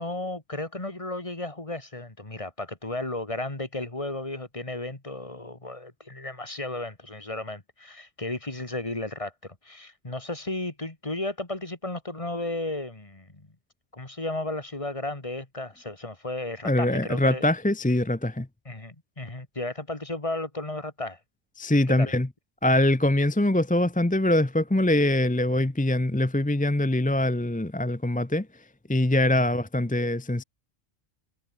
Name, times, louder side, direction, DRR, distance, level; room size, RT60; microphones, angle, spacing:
voice 1, 0.0-13.5 13.9-17.5 18.7-21.2 21.9-22.1, left 2 dB, 30° left, 2.5 m, -34 dB
voice 2, 16.6-18.5 21.6-22.3 22.6-28.5 28.9-30.4, left 1 dB, 10° left, 0.6 m, -23 dB
omnidirectional pair, 1.2 m